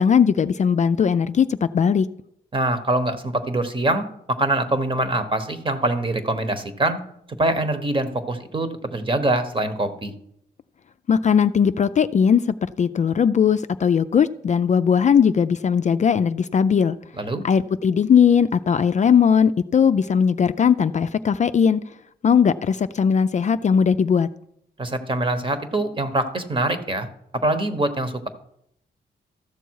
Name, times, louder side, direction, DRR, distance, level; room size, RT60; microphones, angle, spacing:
voice 1, 0.0-2.1 11.1-17.0 17.4-21.8 22.2-24.3, left 7 dB, 45° left, 11 dB, 0.4 m, -19 dB
voice 2, 2.5-7.0 7.4-10.1 17.2-17.4 24.8-27.1 27.3-28.3, right 2 dB, 30° right, 9 dB, 1.2 m, -24 dB
13.0 x 6.8 x 4.7 m, 0.74 s
cardioid pair, 85°, 18 cm